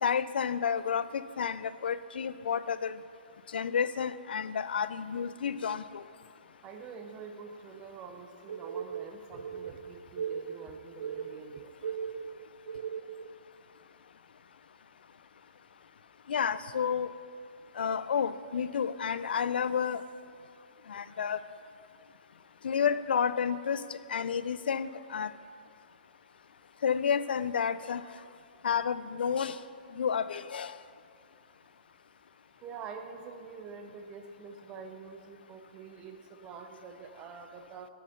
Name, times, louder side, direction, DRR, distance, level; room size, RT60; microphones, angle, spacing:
voice 1, 0.0-3.0 3.5-6.0 16.3-17.2 17.8-20.0 20.9-21.4 22.6-25.3 26.8-28.0 28.6-29.6 29.9-30.8, left 7 dB, 85° left, 15 dB, 0.3 m, -30 dB
voice 2, 6.6-11.7 32.6-37.9, right 5 dB, 15° right, 6 dB, 0.4 m, -46 dB
sound 1, 8.5-13.3, right 7 dB, 85° right, 0.4 m, -38 dB
6.5 x 6.4 x 5.5 m, 2.3 s
hypercardioid pair, 170°, 5 cm